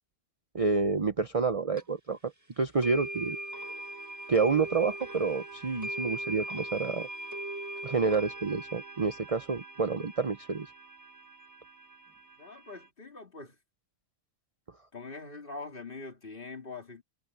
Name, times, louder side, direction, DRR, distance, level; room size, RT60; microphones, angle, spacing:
voice 1, 0.5-2.2 2.6-3.4 4.3-7.1 7.8-10.7, right 4 dB, 30° right, 0.7 m, -28 dB
sound 1, 1.8-1.9 2.8-12.9, right 1 dB, 15° right, 1.9 m, -41 dB
voice 2, 12.4-13.5 14.9-17.0, left 3 dB, 40° left, 3.1 m, -43 dB
omnidirectional pair, 1.4 m